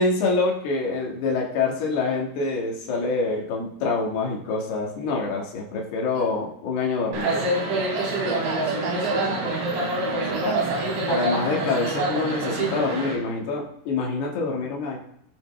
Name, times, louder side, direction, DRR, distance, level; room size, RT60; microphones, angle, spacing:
voice 1, 0.0-7.6 11.1-15.0, left 3 dB, 65° left, 3.6 m, -26 dB
sound 1, 7.1-13.1, right 2 dB, 90° right, 5.8 m, -26 dB
voice 2, 7.9-9.9 10.2-11.0, right 6 dB, 75° right, 2.7 m, -32 dB
18.0 x 7.3 x 3.3 m
omnidirectional pair, 5.2 m